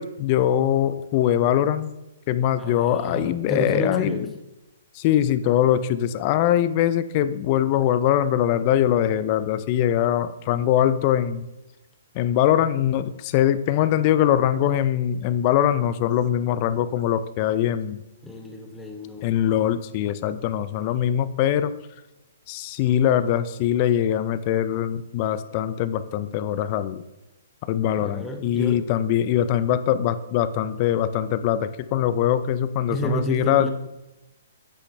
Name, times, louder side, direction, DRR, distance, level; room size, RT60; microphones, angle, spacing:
voice 1, 0.0-1.9 2.3-4.3 4.9-11.5 12.1-18.0 19.2-21.7 22.5-27.0 27.7-33.7, left 11 dB, 40° left, 13 dB, 0.4 m, -22 dB
voice 2, 2.6-4.2 18.2-19.3 28.0-28.8 32.9-33.7, equal, 5° left, 2 dB, 0.9 m, -30 dB
7.7 x 6.5 x 3.2 m, 0.95 s
hypercardioid pair, 140°, 0 cm